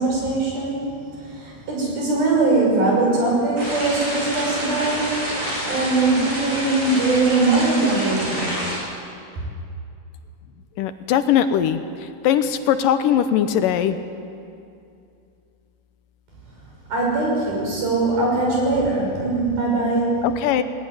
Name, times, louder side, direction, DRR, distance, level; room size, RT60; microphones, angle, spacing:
voice 1, 0.0-8.7 16.9-20.3, right 2 dB, 80° right, -2 dB, 8.5 m, -21 dB
sound 1, 3.6-8.7, equal, 55° right, 9.3 m, -28 dB
voice 2, 10.8-14.0 20.2-20.6, left 9 dB, 75° left, 10 dB, 2.3 m, -20 dB
19.5 x 19.0 x 9.7 m, 2.5 s
omnidirectional pair, 4.2 m